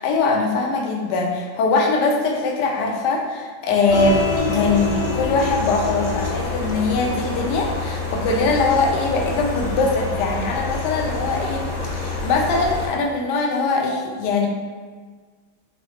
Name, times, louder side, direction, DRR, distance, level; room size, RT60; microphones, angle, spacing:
voice 1, 0.0-14.5, left 3 dB, 75° left, 1 dB, 1.0 m, -22 dB
sound 1, 3.9-12.9, left 3 dB, 50° left, 0.9 m, -28 dB
sound 2, 3.9-10.6, left 2 dB, 75° right, 1.5 m, -30 dB
3.7 x 3.1 x 3.1 m, 1.5 s
omnidirectional pair, 2.3 m